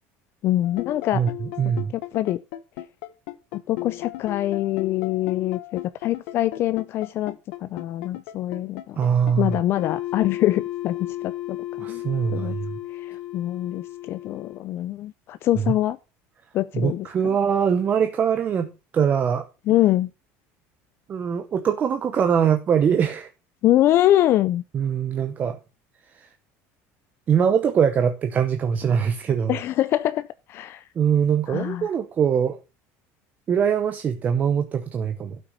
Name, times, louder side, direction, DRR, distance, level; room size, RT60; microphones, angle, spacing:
voice 1, 0.4-1.2 1.9-2.4 3.5-9.0 9.4-11.6 11.9-12.0 12.3-12.6 12.9-16.0 16.5-17.1 19.7-20.1 23.6-24.6 29.5-30.8 31.5-31.9, left 14 dB, 45° left, 0.4 m, -24 dB
sound 1, 0.6-14.6, left 15 dB, 85° left, 1.0 m, -34 dB
voice 2, 1.1-1.9 9.0-9.6 11.8-12.8 15.6-15.7 16.7-18.7 18.9-19.5 21.1-23.3 24.7-25.6 26.1-26.3 27.3-29.6 31.0-32.6 33.5-35.4, right 7 dB, 30° right, 0.9 m, -22 dB
12.5 x 5.9 x 5.4 m
cardioid pair, 160°, 6 cm